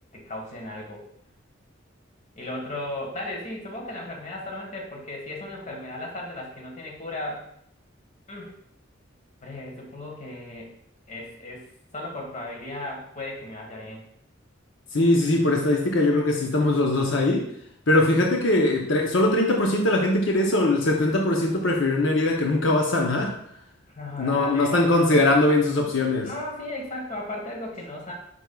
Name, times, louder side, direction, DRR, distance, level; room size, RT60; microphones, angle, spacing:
voice 1, 0.1-1.0 2.3-7.5 8.3-8.6 9.4-10.7 11.1-11.7 11.9-14.0 23.9-25.3 26.2-28.1, left 1 dB, 40° left, 0 dB, 1.6 m, -35 dB
voice 2, 14.9-17.5 17.9-23.3 24.2-26.3, left 2 dB, 75° left, 1 dB, 0.8 m, -21 dB
9.3 x 5.3 x 2.3 m, 0.73 s
head